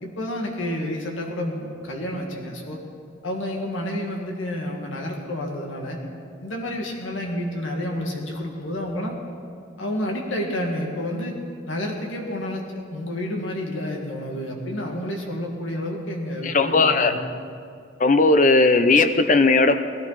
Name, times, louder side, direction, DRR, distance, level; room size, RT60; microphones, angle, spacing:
voice 1, 0.0-2.8 3.2-6.0 6.4-9.1 9.8-11.3 11.7-17.2, left 1 dB, 90° left, 0 dB, 2.1 m, -30 dB
voice 2, 16.4-17.1 18.0-19.8, left 3 dB, 40° left, 9 dB, 0.6 m, -17 dB
18.5 x 13.5 x 4.1 m, 2.4 s
head